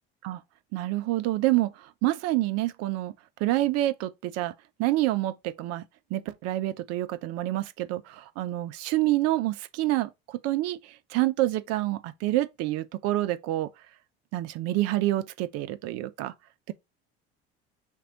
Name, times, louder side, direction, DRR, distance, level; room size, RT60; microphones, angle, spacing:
voice 1, 0.7-1.7 2.0-3.1 3.4-4.5 4.8-5.8 6.1-10.1 10.4-10.8 11.1-13.7 14.3-16.3, right 16 dB, 55° right, 0.7 m, -27 dB
4.5 x 3.0 x 3.8 m
hypercardioid pair, 70°, 30 cm